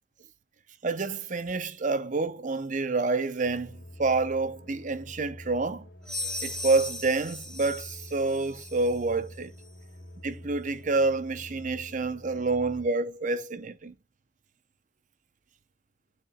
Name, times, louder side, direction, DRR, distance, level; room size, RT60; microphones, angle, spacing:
voice 1, 0.8-5.8 6.4-9.5 10.2-13.9, right 3 dB, 40° right, 0.7 m, -28 dB
sound 1, 3.4-12.9, left 1 dB, 60° left, 2.5 m, -47 dB
sound 2, 6.1-9.0, left 1 dB, 5° left, 2.3 m, -37 dB
10.5 x 6.7 x 2.3 m
head